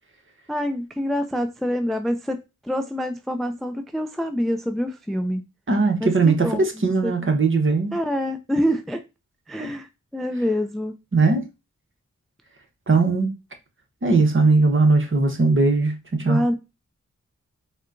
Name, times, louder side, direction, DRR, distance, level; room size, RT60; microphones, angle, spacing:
voice 1, 0.5-5.4 6.0-6.7 7.0-7.1 7.9-9.0 9.5-10.9 16.3-16.5, equal, ahead, 0.4 m, -26 dB
voice 2, 5.7-7.9 9.6-9.7 11.1-11.5 12.9-13.3 14.0-16.4, right 3 dB, 40° right, 1.0 m, -19 dB
4.3 x 2.2 x 2.5 m
cardioid pair, 45°, 31 cm